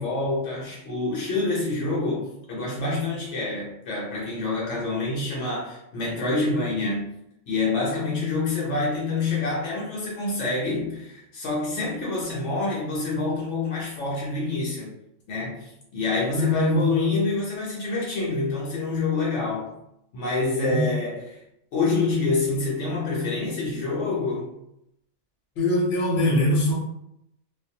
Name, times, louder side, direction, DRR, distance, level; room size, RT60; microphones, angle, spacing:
voice 1, 0.0-7.1 7.5-14.9 15.3-19.7 20.1-21.2 21.7-24.5, left 3 dB, 85° left, -4 dB, 1.0 m, -27 dB
voice 2, 16.3-17.1 20.7-21.0 25.6-26.7, left 1 dB, 60° left, -4 dB, 1.0 m, -22 dB
2.4 x 2.0 x 2.7 m, 0.81 s
omnidirectional pair, 1.2 m